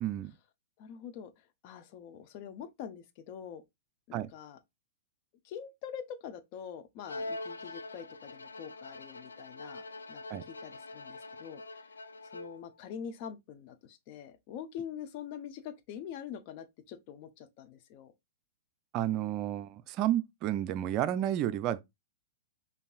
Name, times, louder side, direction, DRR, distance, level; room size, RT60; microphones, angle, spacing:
voice 1, 0.0-0.3 4.1-4.3 10.3-10.4 18.9-21.8, right 12 dB, 40° right, 0.4 m, -31 dB
voice 2, 0.8-1.3 1.6-3.6 4.1-4.6 5.4-9.8 10.1-11.6 12.2-18.1, left 8 dB, 45° left, 0.6 m, -44 dB
Bowed string instrument, 7.1-12.8, left 2 dB, 90° left, 0.3 m, -44 dB
5.3 x 2.6 x 2.4 m
hypercardioid pair, 110°, 0 cm